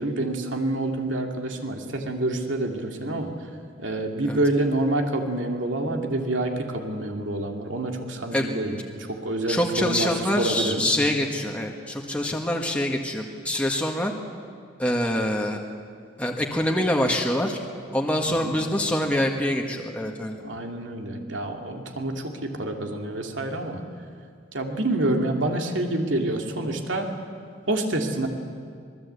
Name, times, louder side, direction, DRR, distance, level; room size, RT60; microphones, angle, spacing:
voice 1, 0.0-3.3 3.8-10.1 10.4-10.8 18.4-18.5 20.4-23.8 24.5-27.1 27.7-28.3, right 2 dB, 85° right, 2 dB, 2.8 m, -27 dB
voice 2, 9.5-14.1 14.8-15.6 16.2-17.6 17.9-20.4, left 1 dB, 5° left, 0 dB, 1.6 m, -25 dB
26.0 x 20.5 x 8.4 m, 2.2 s
head